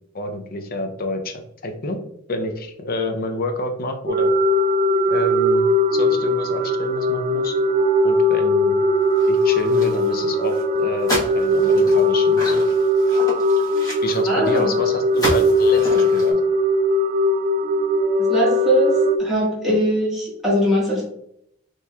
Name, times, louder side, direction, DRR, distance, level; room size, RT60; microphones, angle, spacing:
voice 1, 0.1-2.0 2.3-4.3 5.1-7.6 8.0-8.7 9.3-12.6 14.0-16.4, left 1 dB, 50° left, 6 dB, 0.6 m, -28 dB
sound 1, 4.1-19.2, left 1 dB, 45° right, 0.3 m, -19 dB
sound 2, 9.2-10.2 10.5-10.6 11.0-14.7 15.1-16.3, equal, 20° left, 1.2 m, -30 dB
voice 2, 14.3-14.7 18.3-18.9 19.2-21.0, equal, ahead, -8 dB, 1.6 m, -20 dB
5.7 x 3.0 x 2.3 m, 0.73 s
head